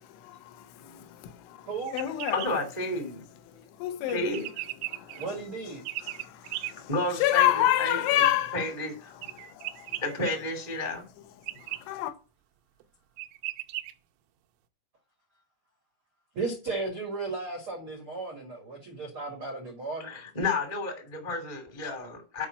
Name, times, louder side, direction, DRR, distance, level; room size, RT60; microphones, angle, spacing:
voice 1, 0.0-2.5 3.5-4.4 4.9-5.4 6.0-8.7 9.1-10.0 11.5-12.1, left 13 dB, 75° left, 3.1 m, -29 dB
sound 1, 1.9-2.5 4.1-5.3 5.9-6.7 9.2-10.3 11.5-11.8 12.8-12.9 13.2-13.9, right 17 dB, 80° right, 3.1 m, -36 dB
voice 2, 2.3-3.2 4.1-4.5 6.9-7.5 7.8-8.0 8.5-9.1 10.0-11.0 20.0-22.4, left 2 dB, 20° left, 1.0 m, -31 dB
voice 3, 5.2-5.8 16.3-20.1, right 3 dB, 65° right, 1.3 m, -35 dB
8.6 x 5.3 x 7.3 m
omnidirectional pair, 5.9 m